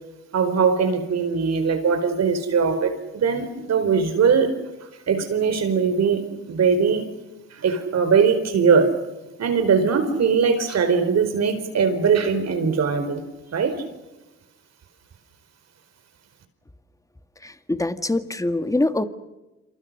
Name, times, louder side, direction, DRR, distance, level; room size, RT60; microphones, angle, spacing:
voice 1, 0.3-4.5 5.1-7.0 7.5-8.9 9.4-13.2 13.5-13.8, right 6 dB, 60° right, 9 dB, 4.7 m, -21 dB
voice 2, 17.4-19.0, left 2 dB, 10° left, 10 dB, 1.8 m, -24 dB
27.5 x 27.0 x 6.5 m, 1.0 s
cardioid pair, 90°, 30 cm